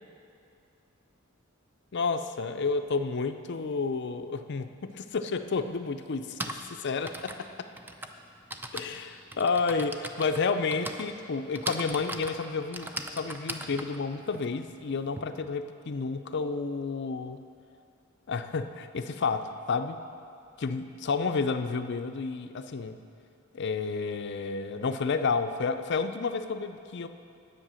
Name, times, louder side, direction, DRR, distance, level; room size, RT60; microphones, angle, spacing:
voice 1, 1.9-6.4 6.7-7.7 8.7-17.4 18.3-20.0 20.6-23.0 23.5-27.1, left 4 dB, 55° left, 9 dB, 0.5 m, -31 dB
Typing, 5.0-5.1 6.1-15.2, right 1 dB, 10° right, 0.5 m, -39 dB
10.0 x 8.2 x 6.3 m, 2.5 s
head